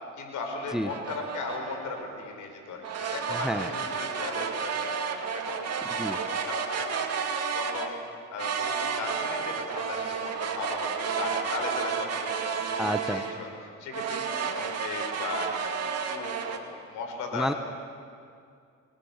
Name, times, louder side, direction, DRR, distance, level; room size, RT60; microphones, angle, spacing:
voice 1, 0.2-7.3 7.5-8.0 8.3-13.5 13.8-15.7 16.1-17.6, left 3 dB, 80° left, 3 dB, 5.5 m, -37 dB
sound 1, 0.9-2.1 2.8-7.9 8.4-13.4 13.9-16.6, right 6 dB, 55° right, 2.6 m, -31 dB
voice 2, 3.3-3.7 5.8-6.2 12.8-13.2 17.3-17.5, equal, ahead, 9 dB, 1.2 m, -30 dB
29.5 x 20.0 x 7.4 m, 2.3 s
cardioid pair, 90°, 30 cm